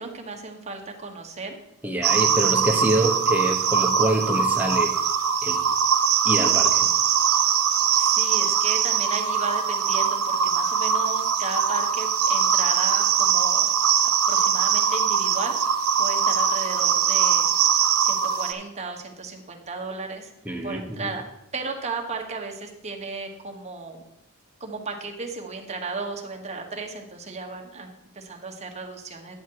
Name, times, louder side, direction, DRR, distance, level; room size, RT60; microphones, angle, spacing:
voice 1, 0.0-1.6 7.9-13.7 14.3-15.6 16.0-17.5 18.0-20.3 20.6-21.2 21.5-24.0 24.6-29.4, right 4 dB, 30° right, 2 dB, 1.3 m, -35 dB
voice 2, 1.8-4.9 5.4-5.6 6.2-6.9 20.4-21.1, right 1 dB, 10° right, 2 dB, 1.1 m, -25 dB
sound 1, 2.0-18.5, right 7 dB, 85° right, 0.8 m, -22 dB
10.0 x 7.3 x 4.7 m, 0.85 s
head